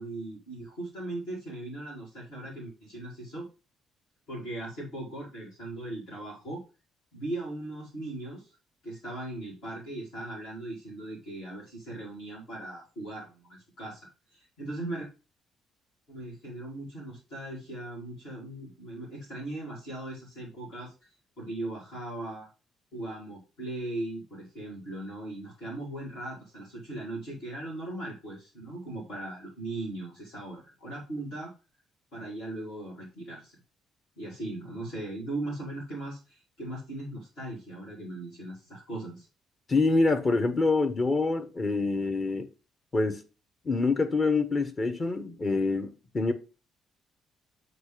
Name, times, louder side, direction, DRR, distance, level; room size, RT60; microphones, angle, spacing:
voice 1, 0.0-3.5 4.3-6.6 7.1-8.5 8.8-15.1 16.1-21.1 21.4-22.5 22.9-31.5 32.1-33.6 34.2-39.3, right 2 dB, 65° left, 2.2 m, -38 dB
voice 2, 39.7-42.5 42.9-43.2 43.6-46.3, left 3 dB, 35° left, 1.0 m, -26 dB
7.9 x 3.0 x 5.1 m
figure-of-eight pair, 45°, 0 cm